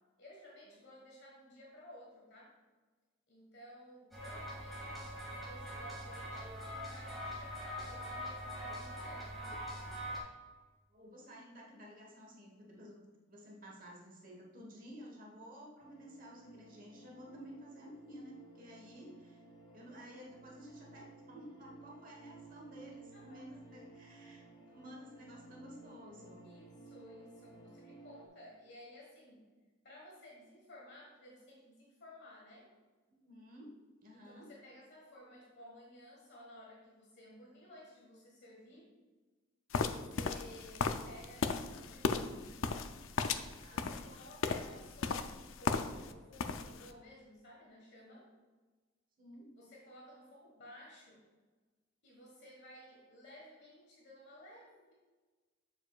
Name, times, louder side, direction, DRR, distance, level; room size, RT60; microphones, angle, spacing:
voice 1, 0.2-2.5 3.3-9.6 23.1-23.6 26.4-29.5 29.8-32.7 34.1-38.9 39.9-42.7 43.7-48.3 49.6-51.3 52.0-54.9, left 1 dB, 55° left, -3 dB, 1.4 m, -55 dB
sound 1, 4.1-10.2, equal, ahead, 2.0 m, -43 dB
voice 2, 10.9-13.0 13.3-19.4 19.7-26.5 33.2-34.5 43.5-43.9 49.2-49.5, equal, 40° right, -1 dB, 1.2 m, -53 dB
sound 2, 15.8-28.3, right 3 dB, 25° left, 0.6 m, -56 dB
sound 3, 39.7-46.1 46.4-46.9, left 5 dB, 75° left, 0.4 m, -36 dB
7.1 x 6.9 x 2.3 m, 1.3 s
head